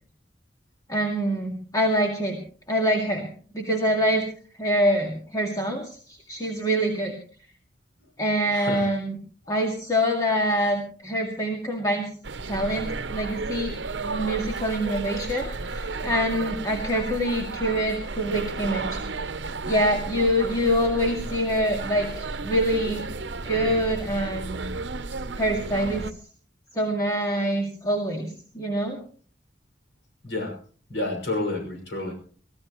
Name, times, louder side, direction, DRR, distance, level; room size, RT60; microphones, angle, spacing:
voice 1, 0.9-2.4 2.7-3.3 3.5-4.3 4.6-7.2 8.2-9.2 9.5-12.1 12.5-19.0 19.7-23.1 23.4-24.7 25.4-26.1 26.7-29.0, equal, 20° left, 1 dB, 2.1 m, -25 dB
voice 2, 8.5-8.9 22.0-22.1 30.2-30.6 30.9-32.1, left 2 dB, 85° left, 2 dB, 6.0 m, -30 dB
sound 1, 12.2-26.1, right 3 dB, 85° right, 0.8 m, -33 dB
24.5 x 15.5 x 3.1 m, 0.43 s
head